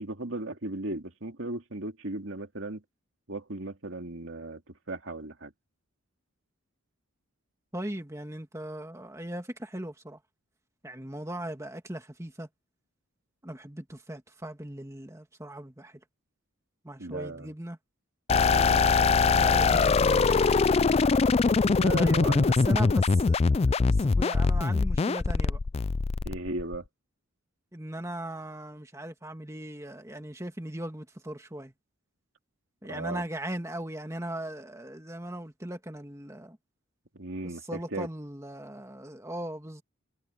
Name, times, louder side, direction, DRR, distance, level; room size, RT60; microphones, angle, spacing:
voice 1, 0.0-2.8 3.3-5.5 17.0-17.5 18.4-18.8 21.4-22.8 26.2-26.9 32.9-33.2 37.1-38.1, right 2 dB, 60° right, 2.6 m, -36 dB
voice 2, 7.7-10.2 10.8-12.5 13.4-16.0 16.8-17.8 19.4-20.7 21.9-23.4 23.8-25.6 27.7-31.7 32.8-36.6 37.7-39.8, right 1 dB, 15° right, 1.9 m, -38 dB
sound 1, 18.3-26.8, left 4 dB, 30° left, 0.3 m, -23 dB
head